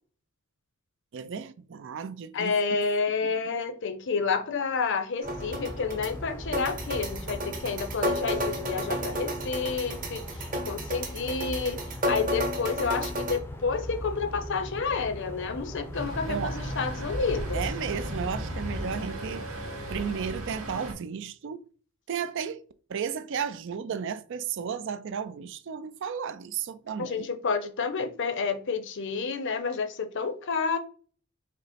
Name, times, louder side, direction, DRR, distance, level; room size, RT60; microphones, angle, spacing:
voice 1, 1.1-2.5 3.2-3.5 16.3-16.6 17.5-19.5 19.9-21.6 22.1-22.6 22.9-27.3, right 7 dB, 60° right, 0.4 m, -34 dB
voice 2, 2.3-17.6 27.0-30.8, left 5 dB, 60° left, 0.6 m, -30 dB
sound 1, 5.2-19.0, left 1 dB, 10° left, 0.5 m, -39 dB
sound 2, 5.2-13.4, equal, 40° right, 1.1 m, -32 dB
Traffic noise roadway noise, 15.9-20.9, right 1 dB, 75° right, 2.0 m, -36 dB
5.2 x 2.0 x 4.1 m
head